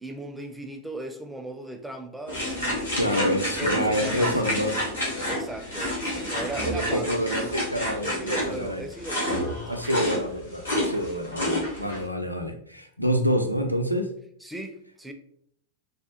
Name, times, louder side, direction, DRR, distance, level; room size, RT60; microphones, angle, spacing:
voice 1, 0.0-3.3 3.6-4.6 5.3-7.3 8.0-10.0 14.4-15.1, right 2 dB, 5° right, 0.4 m, -38 dB
sound 1, 2.3-12.0, left 1 dB, 80° left, 1.0 m, -29 dB
voice 2, 3.0-4.9 6.7-8.8 9.7-14.1, equal, 90° right, 0.4 m, -27 dB
3.3 x 2.1 x 2.8 m
figure-of-eight pair, 90°, 0 cm